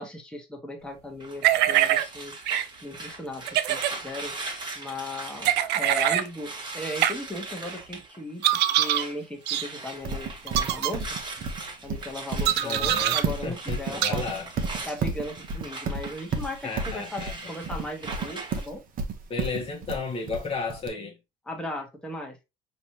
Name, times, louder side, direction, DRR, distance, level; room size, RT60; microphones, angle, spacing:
voice 1, 0.0-2.3 2.8-4.3 4.7-11.1 11.8-14.2 14.8-18.8 21.4-22.4, left 1 dB, 5° left, 1.3 m, -37 dB
sound 1, 1.2-9.2 9.4-18.7, right 3 dB, 25° right, 1.5 m, -40 dB
sound 2, 1.4-2.0 2.5-2.6 3.5-3.9 5.4-6.3 7.0-7.1 8.4-9.0 9.5-9.6 10.5-10.9 12.4-13.2 14.0-14.1, right 12 dB, 85° right, 0.5 m, -23 dB
Livestock farm animals working animals, 10.0-20.9, right 4 dB, 55° right, 1.0 m, -31 dB
voice 2, 12.6-13.2 13.4-14.5 16.6-17.3 19.3-21.2, left 4 dB, 35° left, 1.1 m, -33 dB
5.1 x 3.1 x 2.8 m
cardioid pair, 110°, 17 cm